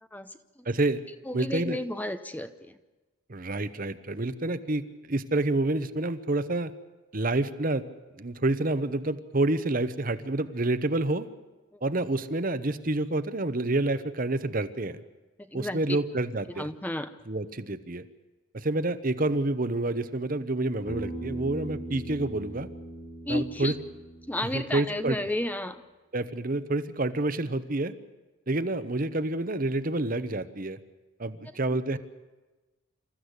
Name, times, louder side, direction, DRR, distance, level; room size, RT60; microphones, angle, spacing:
voice 1, 0.1-0.7 1.3-2.8 11.7-11.8 15.5-16.0 16.6-17.1 23.2-23.8 24.3-25.8, left 1 dB, 10° left, 10 dB, 0.7 m, -32 dB
voice 2, 0.6-1.0 1.3-1.8 3.3-6.7 7.1-7.8 8.2-11.3 11.8-15.0 15.5-16.7 17.3-18.1 18.5-22.7 23.3-23.7 24.5-25.2 26.1-27.9 28.5-30.8 31.2-32.0, right 2 dB, 45° right, 12 dB, 1.0 m, -28 dB
Bass guitar, 20.9-25.2, right 1 dB, 45° left, 3.6 m, -40 dB
27.0 x 14.5 x 8.2 m, 1.2 s
head